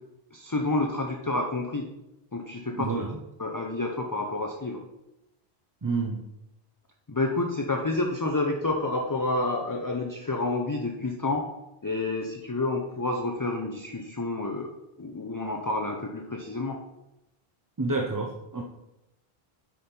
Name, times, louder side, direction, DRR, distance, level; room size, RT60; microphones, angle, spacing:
voice 1, 0.3-1.9 2.3-3.0 3.4-4.8 7.1-11.5 11.8-16.8, left 2 dB, 25° left, 2 dB, 0.5 m, -29 dB
voice 2, 2.8-3.1 5.8-6.2 17.8-18.6, right 3 dB, 25° right, 1 dB, 0.5 m, -29 dB
7.3 x 5.3 x 4.4 m, 0.92 s
omnidirectional pair, 1.0 m